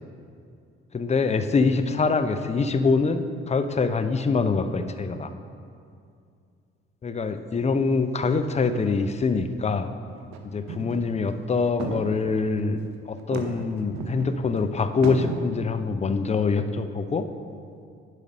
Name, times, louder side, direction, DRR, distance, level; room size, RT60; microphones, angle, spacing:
voice 1, 0.9-5.3 7.0-9.9 10.5-12.8 13.1-17.3, left 4 dB, 20° left, 9 dB, 0.6 m, -24 dB
sound 1, 10.1-10.4 10.7-11.1 11.4-11.5 11.8-12.6 13.2-14.6 15.0-15.4, right 4 dB, 55° right, 0.9 m, -33 dB
10.5 x 5.0 x 5.4 m, 2.4 s
figure-of-eight pair, 45°, 32 cm